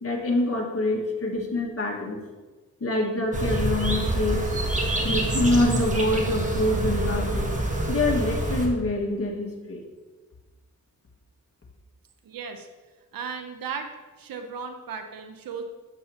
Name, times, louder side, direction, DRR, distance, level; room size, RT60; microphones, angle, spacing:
voice 1, 0.0-2.2 2.8-4.5 5.0-7.5 7.9-9.8, left 2 dB, 45° left, -1 dB, 1.7 m, -25 dB
sound 1, 3.3-8.7, right 1 dB, 20° right, 1.4 m, -26 dB
voice 2, 12.2-12.7 13.1-13.9 14.2-15.6, right 6 dB, 85° right, 6 dB, 0.8 m, -35 dB
7.7 x 7.6 x 2.9 m, 1.3 s
cardioid pair, 65°, 34 cm